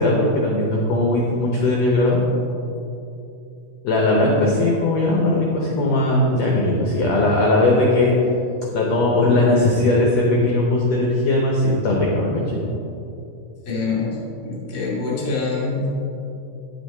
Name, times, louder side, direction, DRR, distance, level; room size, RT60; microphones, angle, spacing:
voice 1, 0.0-2.2 3.8-8.1 8.7-12.6, left 2 dB, 80° left, -2 dB, 1.5 m, -19 dB
voice 2, 13.6-14.2 14.4-15.9, left 4 dB, 10° left, -5 dB, 1.0 m, -25 dB
9.4 x 7.0 x 4.3 m, 2.8 s
omnidirectional pair, 4.2 m